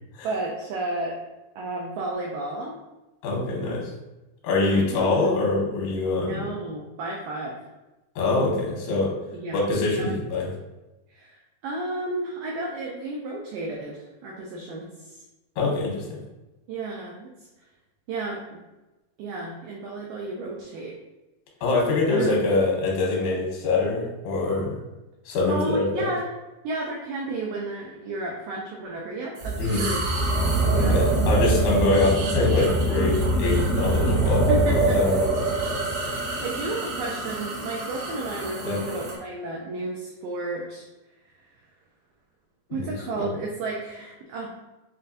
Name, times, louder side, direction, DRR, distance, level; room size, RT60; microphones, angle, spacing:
voice 1, 0.2-1.2 1.6-2.8 4.6-5.2 6.2-7.6 9.3-9.6 9.9-10.1 11.1-15.2 16.7-17.3 18.1-18.6 19.2-21.0 22.1-22.5 25.5-26.3 26.6-30.0 30.7-31.0 34.2-35.2 36.0-40.9 42.7-44.5, right 2 dB, 90° right, -2 dB, 1.9 m, -32 dB
voice 2, 3.2-3.9 4.4-6.5 8.2-9.1 9.5-10.5 15.6-16.2 21.6-24.7 25.3-26.1 29.6-29.8 30.8-35.3 35.6-35.7 38.6-38.8 42.7-43.3, left 3 dB, 85° left, -2 dB, 3.1 m, -24 dB
sound 1, 29.4-39.2, right 2 dB, 70° right, 2.7 m, -24 dB
7.5 x 2.6 x 2.5 m, 1.0 s
omnidirectional pair, 4.6 m